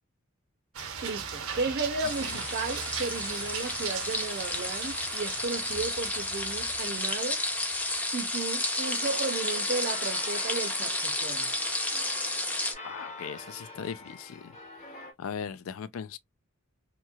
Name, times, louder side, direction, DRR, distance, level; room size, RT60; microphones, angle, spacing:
sound 1, 0.7-8.4, right 6 dB, 90° right, 0.8 m, -39 dB
voice 1, 1.0-7.4 8.1-11.5, right 3 dB, 50° right, 0.5 m, -34 dB
sound 2, 2.0-12.7, left 2 dB, 5° left, 0.5 m, -32 dB
sound 3, 8.8-15.1, left 2 dB, 35° left, 0.9 m, -45 dB
voice 2, 12.8-14.6 15.2-16.2, left 7 dB, 80° left, 0.4 m, -38 dB
3.0 x 2.7 x 2.2 m
head